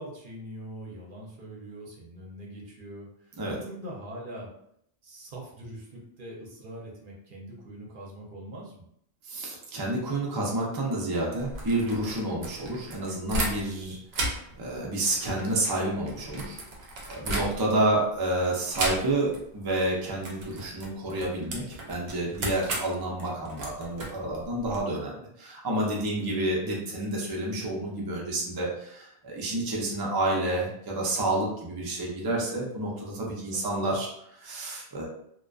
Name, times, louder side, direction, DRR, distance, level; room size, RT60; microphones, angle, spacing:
voice 1, 0.0-4.5 5.0-8.8 26.0-26.3 33.7-33.8, right 1 dB, 60° right, -2 dB, 0.8 m, -43 dB
voice 2, 9.2-16.6 17.1-35.1, right 1 dB, 35° right, -3 dB, 0.4 m, -29 dB
sound 1, 11.4-13.8 14.1-17.9 18.7-19.4 19.7-19.9 20.2-24.8, right 2 dB, 85° right, 0.9 m, -35 dB
2.5 x 2.2 x 2.3 m, 0.72 s
omnidirectional pair, 1.1 m